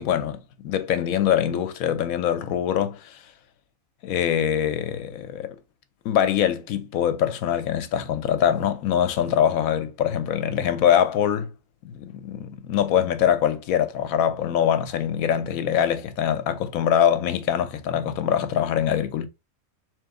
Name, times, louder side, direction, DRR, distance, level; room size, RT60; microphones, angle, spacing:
voice 1, 0.0-3.2 4.0-5.6 6.0-11.5 11.8-19.3, left 9 dB, 85° left, 1.1 m, -23 dB
3.8 x 3.1 x 3.6 m
omnidirectional pair, 1.4 m